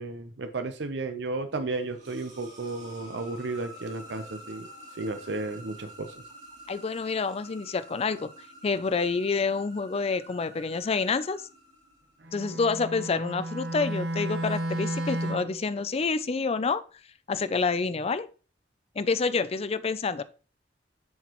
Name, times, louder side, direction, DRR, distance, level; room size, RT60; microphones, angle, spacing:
voice 1, 0.0-4.7 5.0-6.1, right 3 dB, 85° right, 7 dB, 0.7 m, -33 dB
sound 1, 1.6-12.4, right 1 dB, 40° right, 2.8 m, -49 dB
voice 2, 6.7-8.3 8.6-11.4 12.3-16.8 17.3-18.3 19.0-20.2, left 4 dB, 35° left, 14 dB, 0.4 m, -28 dB
Bowed string instrument, 12.2-15.6, right 1 dB, 70° right, 1.2 m, -32 dB
7.2 x 6.1 x 3.0 m, 0.36 s
head